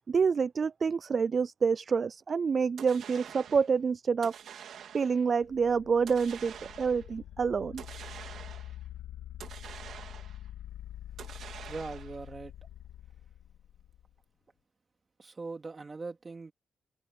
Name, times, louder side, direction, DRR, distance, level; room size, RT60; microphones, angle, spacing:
voice 1, 0.1-4.3 4.9-7.8, right 5 dB, 50° right, 0.3 m, -27 dB
sound 1, 2.8-3.7 4.2-5.3 6.1-7.1 7.8-8.8 9.4-10.5 11.2-12.3, right 9 dB, 80° right, 3.2 m, -47 dB
sound 2, 5.4-14.2, left 11 dB, 80° left, 0.8 m, -46 dB
voice 2, 11.7-12.5 15.2-16.5, right 3 dB, 35° right, 3.7 m, -40 dB
cardioid pair, 75°, 0 cm